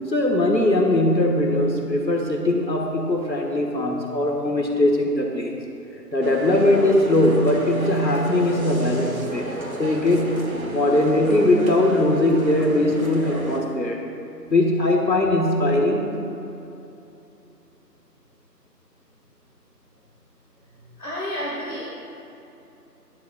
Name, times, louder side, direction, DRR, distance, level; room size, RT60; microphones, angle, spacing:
voice 1, 0.1-5.5 6.1-9.4 9.8-14.1 14.5-16.1, left 1 dB, 85° left, 2 dB, 1.7 m, -20 dB
sound 1, 6.2-13.6, right 1 dB, 55° right, 1.4 m, -33 dB
voice 2, 21.0-21.8, equal, 60° left, -7 dB, 2.4 m, -30 dB
18.5 x 11.5 x 2.4 m, 2.9 s
figure-of-eight pair, 170°, 50 cm